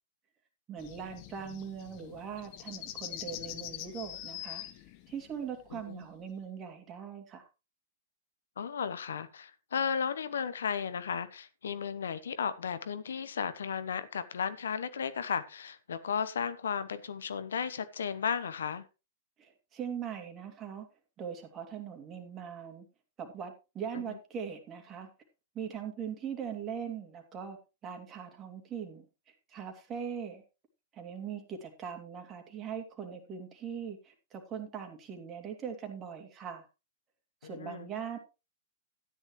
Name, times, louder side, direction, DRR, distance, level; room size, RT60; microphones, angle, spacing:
voice 1, 0.7-4.6 5.1-7.5 19.4-20.9 21.2-22.9 23.2-25.1 25.5-27.6 27.8-30.4 30.9-36.6 37.4-38.2, right 7 dB, 30° right, 2.7 m, -41 dB
sound 1, 0.8-6.3, left 13 dB, 45° left, 1.4 m, -44 dB
voice 2, 5.7-6.0 8.6-18.9 23.9-24.2 37.4-37.9, left 7 dB, 75° left, 1.0 m, -34 dB
13.0 x 10.0 x 3.2 m
hypercardioid pair, 105°, 0 cm